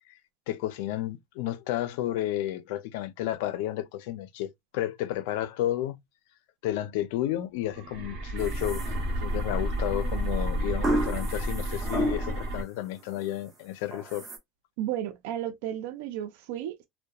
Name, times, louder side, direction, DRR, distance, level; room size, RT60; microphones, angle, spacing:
voice 1, 0.5-6.0 6.6-8.8 9.2-14.3, left 13 dB, 75° left, 0.4 m, -32 dB
sound 1, 7.7-12.6, right 1 dB, 50° right, 0.9 m, -31 dB
sound 2, 8.4-9.5 10.8-12.5 12.9-13.4 13.9-14.4, right 1 dB, 20° right, 0.7 m, -32 dB
voice 2, 14.8-16.8, right 11 dB, 75° right, 0.4 m, -33 dB
2.8 x 2.1 x 2.2 m
cardioid pair, 170°, 0 cm